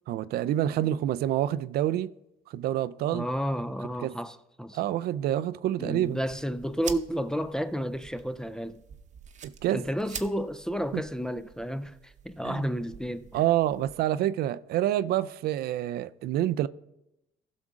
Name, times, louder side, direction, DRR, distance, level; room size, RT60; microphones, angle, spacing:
voice 1, 0.1-2.1 2.5-3.3 4.0-4.2 4.7-6.2 9.4-9.8 10.9-11.0 12.4-12.7 13.3-16.7, right 12 dB, 70° right, 0.4 m, -27 dB
voice 2, 3.1-4.8 5.8-8.8 9.7-13.4, equal, 5° left, 0.4 m, -31 dB
sound 1, 6.0-13.9, right 7 dB, 45° right, 0.8 m, -46 dB
16.0 x 6.2 x 3.7 m
cardioid pair, 110°, 17 cm